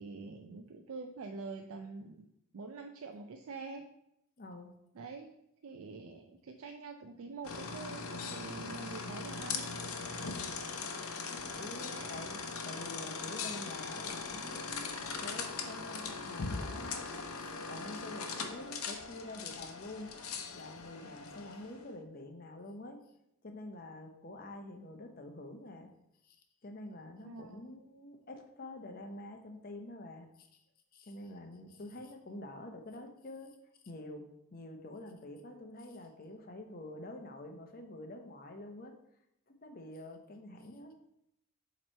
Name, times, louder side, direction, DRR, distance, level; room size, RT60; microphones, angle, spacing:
voice 1, 0.0-2.3 2.5-3.8 4.9-5.4 5.6-10.0 11.9-12.2 27.2-27.6, right 4 dB, 75° right, 4 dB, 0.4 m, -46 dB
voice 2, 4.4-4.7 10.2-10.5 11.3-20.2 20.5-23.0 23.4-25.9 26.2-30.5 30.9-33.6 33.8-38.9 39.5-40.9, left 1 dB, 40° left, 4 dB, 0.7 m, -47 dB
sound 1, 7.4-21.9, left 4 dB, 85° left, 0.7 m, -40 dB
7.2 x 3.0 x 4.3 m, 0.81 s
head